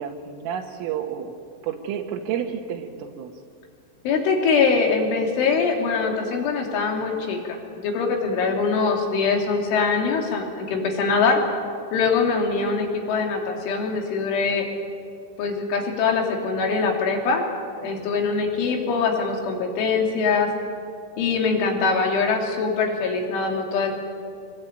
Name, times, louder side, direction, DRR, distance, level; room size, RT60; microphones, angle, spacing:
voice 1, 0.0-1.3 1.6-3.3 17.8-17.9, right 8 dB, 85° right, 1 dB, 4.0 m, -30 dB
voice 2, 4.1-11.4 11.9-14.7 15.4-17.5 17.8-20.5 21.2-23.9, left 4 dB, 75° left, 1 dB, 5.3 m, -23 dB
26.0 x 20.5 x 8.9 m, 2.2 s
omnidirectional pair, 5.6 m